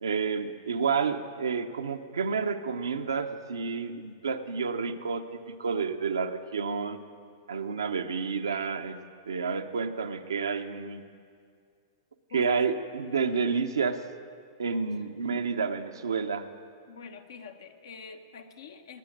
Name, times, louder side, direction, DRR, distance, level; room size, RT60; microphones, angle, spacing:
voice 1, 0.0-7.0 7.5-9.0 9.3-11.1 12.3-14.0 14.6-16.5, right 5 dB, 90° right, 6 dB, 0.8 m, -30 dB
voice 2, 12.3-12.6 16.9-19.0, left 5 dB, 75° left, 6 dB, 1.2 m, -45 dB
21.0 x 9.0 x 6.6 m, 2.2 s
hypercardioid pair, 115°, 2 cm